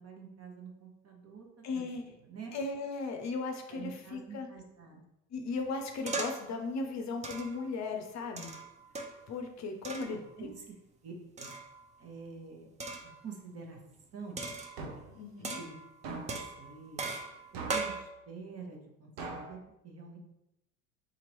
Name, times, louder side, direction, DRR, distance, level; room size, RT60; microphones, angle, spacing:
voice 1, 0.0-2.5 3.7-5.0 9.9-10.7 11.0-11.5 12.0-12.7 13.0-13.8 14.1-14.4 15.6-15.8 16.3-17.1 17.5-20.2, right 5 dB, 40° right, 0 dB, 1.1 m, -47 dB
voice 2, 1.6-2.0 2.5-4.5 5.3-8.6 9.3-10.5 15.1-15.6, left 3 dB, 45° left, 4 dB, 0.6 m, -37 dB
sound 1, 6.1-6.5 7.2-7.7 8.4-9.3 9.8-10.2 11.4-11.9 12.8-13.2 14.4-15.0 15.4-15.9 16.3-18.0, right 3 dB, 20° right, 0.5 m, -39 dB
sound 2, 14.8-15.2 16.0-16.5 17.5-18.0 19.2-19.6, right 3 dB, 70° right, 0.8 m, -41 dB
3.9 x 2.9 x 3.0 m, 0.86 s
hypercardioid pair, 65°, 39 cm